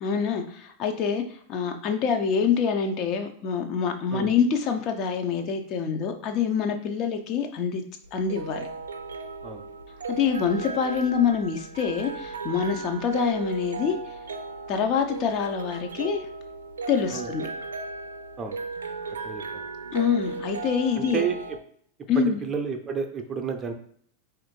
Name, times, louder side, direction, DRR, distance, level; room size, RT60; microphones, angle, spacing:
voice 1, 0.0-7.8 8.1-8.7 10.1-14.1 14.7-16.3 16.9-17.5 19.9-21.2 22.1-22.4, left 6 dB, 40° left, 5 dB, 0.6 m, -26 dB
sound 1, 8.0-21.6, right 4 dB, 70° right, 0.4 m, -36 dB
voice 2, 19.2-19.6 20.9-21.6 22.4-23.7, right 6 dB, 20° right, 5 dB, 0.6 m, -31 dB
4.2 x 2.6 x 4.4 m, 0.62 s
figure-of-eight pair, 90°, 0 cm